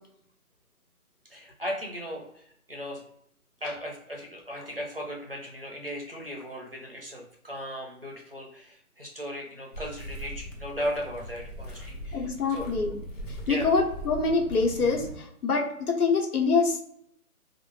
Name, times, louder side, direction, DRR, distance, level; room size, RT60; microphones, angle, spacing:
voice 1, 1.3-3.0 3.6-12.7 13.4-13.7, equal, 40° right, -1 dB, 0.5 m, -37 dB
sound 1, 9.7-15.2, equal, 60° left, 0.8 m, -40 dB
voice 2, 12.1-13.0 13.5-16.8, left 4 dB, 90° left, 1 dB, 0.9 m, -25 dB
2.1 x 2.0 x 3.1 m, 0.73 s
hypercardioid pair, 180°, 44 cm